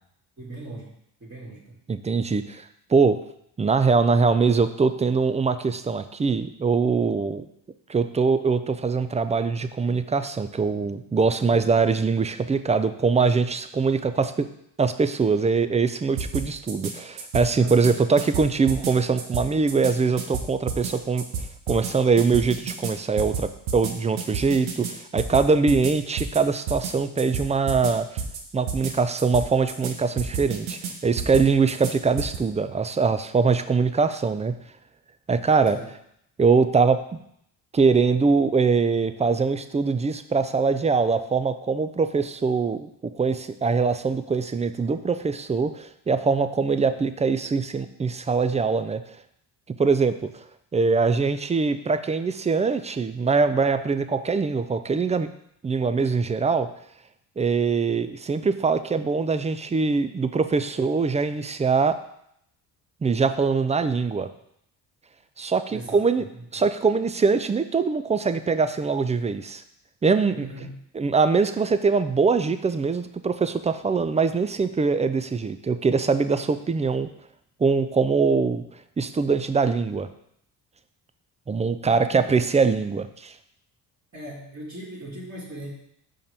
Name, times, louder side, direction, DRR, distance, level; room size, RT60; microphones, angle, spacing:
voice 1, 0.4-0.9 1.2-1.8 17.5-17.8 35.7-35.9 65.7-66.0 66.3-66.7 70.4-70.7 81.8-82.5 84.1-85.7, right 1 dB, 30° right, -7 dB, 2.1 m, -39 dB
voice 2, 1.9-3.2 3.6-7.5 7.9-14.5 14.8-28.2 28.5-34.6 35.3-35.8 36.4-37.0 37.7-42.9 43.1-49.2 49.8-50.4 50.7-55.3 55.6-56.7 57.4-62.0 63.0-64.3 65.4-66.2 66.5-69.6 70.0-70.5 71.0-77.1 77.6-78.6 79.0-80.1 81.5-83.4, right 4 dB, 15° right, 11 dB, 0.4 m, -23 dB
sound 1, 16.2-16.9 17.2-17.9 18.2-18.9 19.2-19.9 20.2-20.9 21.2-21.9 22.2-22.9 23.2-23.9 24.2-24.9 25.2-25.9 26.2-26.4 26.7-26.9 27.2-27.9 28.2-28.4 28.7-28.9 29.2-29.9 30.2-30.9 31.2-31.9 32.2-32.4, right 5 dB, 90° right, 0.9 m, -30 dB
5.5 x 5.1 x 3.5 m, 0.72 s
supercardioid pair, 55°, 46 cm